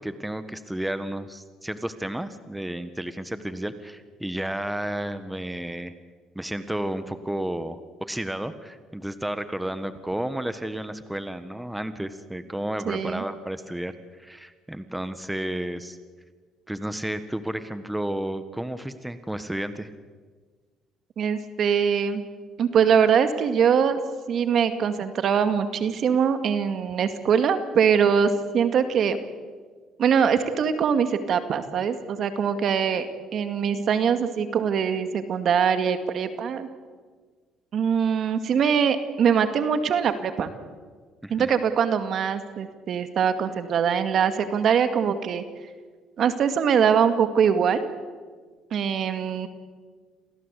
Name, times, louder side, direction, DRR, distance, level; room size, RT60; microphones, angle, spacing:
voice 1, 0.0-5.9 6.3-16.0 16.7-19.9 41.2-41.5, right 1 dB, 5° right, 11 dB, 1.6 m, -32 dB
voice 2, 12.9-13.2 21.2-22.2 22.6-24.0 24.3-29.2 30.0-33.1 33.3-36.7 37.7-40.5 41.3-45.4 46.2-47.8 48.7-49.5, right 7 dB, 60° right, 9 dB, 2.2 m, -22 dB
27.5 x 17.0 x 8.4 m, 1.5 s
supercardioid pair, 80°, 0 cm